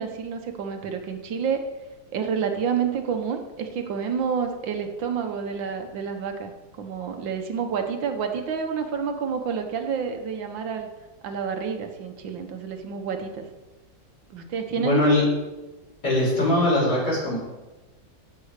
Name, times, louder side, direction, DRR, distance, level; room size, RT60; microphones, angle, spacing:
voice 1, 0.0-1.6 2.1-6.5 6.8-10.9 11.2-13.5 14.3-15.0, right 6 dB, 90° right, 5 dB, 1.8 m, -29 dB
voice 2, 14.8-15.3 16.0-17.4, left 1 dB, 45° left, -5 dB, 4.7 m, -21 dB
14.5 x 6.2 x 4.9 m, 1.1 s
omnidirectional pair, 2.0 m